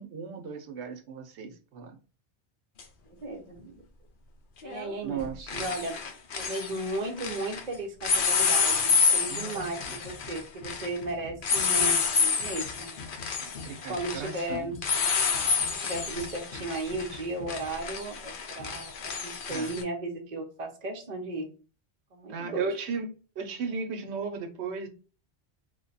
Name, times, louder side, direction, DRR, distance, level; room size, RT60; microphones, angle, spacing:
voice 1, 0.0-2.0 5.0-5.6 9.3-9.7 13.4-14.7 19.5-19.7 22.3-23.1 23.4-24.9, right 5 dB, 75° right, 0.9 m, -36 dB
sound 1, 2.8-2.9 4.6-4.9 5.2-7.6 8.0-19.8, left 5 dB, 55° left, 0.7 m, -29 dB
voice 2, 3.1-3.8 4.6-6.0 6.4-13.0 13.7-14.8 15.6-21.5 22.1-22.7, right 2 dB, 45° right, 0.7 m, -35 dB
3.2 x 2.1 x 3.9 m
omnidirectional pair, 1.1 m